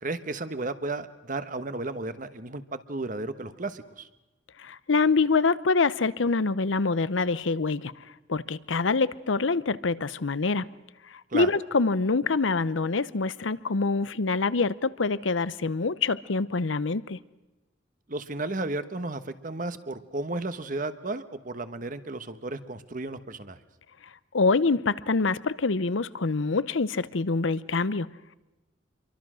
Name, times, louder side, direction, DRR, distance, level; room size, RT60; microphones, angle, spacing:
voice 1, 0.0-4.1 11.3-11.5 18.1-23.6, right 2 dB, 45° right, 1.2 m, -33 dB
voice 2, 4.6-7.9 8.3-10.7 11.1-17.2 24.3-28.1, left 4 dB, 85° left, 0.8 m, -25 dB
27.5 x 23.5 x 6.3 m
head